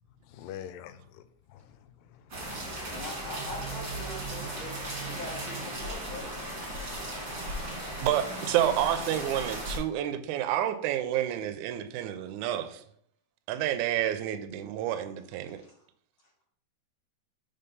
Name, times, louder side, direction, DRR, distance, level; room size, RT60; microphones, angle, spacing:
voice 1, 0.2-3.0, left 10 dB, 90° left, 2.3 m, -47 dB
sound 1, 2.3-9.8, right 1 dB, 35° right, 1.5 m, -36 dB
voice 2, 2.9-6.4 15.6-15.7, left 2 dB, 55° left, 1.5 m, -42 dB
voice 3, 8.0-12.8 13.5-15.6, right 11 dB, 80° right, 1.8 m, -29 dB
5.5 x 3.9 x 5.3 m
omnidirectional pair, 3.9 m